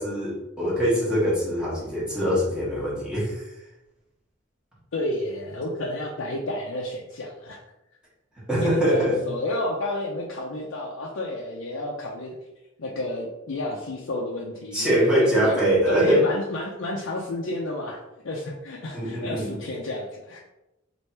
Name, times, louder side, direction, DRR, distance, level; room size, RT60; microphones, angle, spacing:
voice 1, 0.0-3.4 8.5-9.2 14.7-16.2 18.9-19.6, equal, 5° right, -7 dB, 1.3 m, -23 dB
voice 2, 4.9-7.6 8.6-12.3 12.8-15.1 15.4-15.6 15.9-20.4, left 1 dB, 80° left, -2 dB, 0.5 m, -31 dB
3.2 x 2.6 x 4.3 m, 0.94 s
head